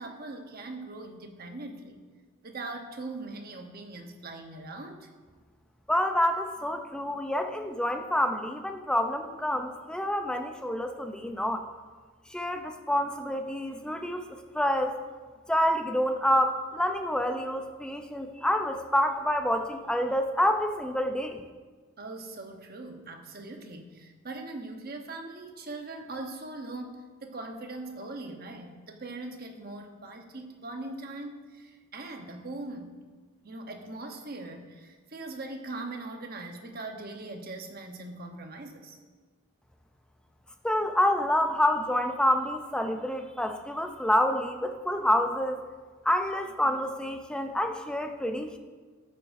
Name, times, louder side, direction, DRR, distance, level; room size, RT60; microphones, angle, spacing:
voice 1, 0.0-2.0 2.4-5.1 22.0-32.9 33.4-39.0, right 2 dB, 50° right, 4 dB, 1.0 m, -41 dB
voice 2, 5.9-11.7 12.3-14.3 14.5-15.0 15.5-21.4 40.6-45.6 46.0-48.6, equal, 5° left, 5 dB, 0.6 m, -27 dB
13.0 x 9.0 x 2.6 m, 1.4 s
head